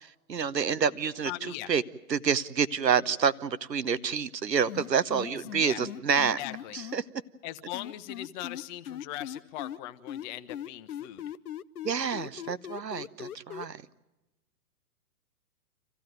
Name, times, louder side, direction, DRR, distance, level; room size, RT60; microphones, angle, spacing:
voice 1, 0.0-1.8 2.1-6.4 6.7-7.0 11.8-13.8, right 6 dB, 85° right, 16 dB, 1.0 m, -28 dB
voice 2, 1.2-1.7 5.3-5.8 6.4-6.8 7.4-11.2, left 14 dB, 30° left, 12 dB, 1.0 m, -40 dB
sound 1, 4.7-7.0 7.7-9.8 10.1-13.7, left 10 dB, 65° left, 0.8 m, -39 dB
27.0 x 15.5 x 9.2 m, 1.0 s
figure-of-eight pair, 120°, 49 cm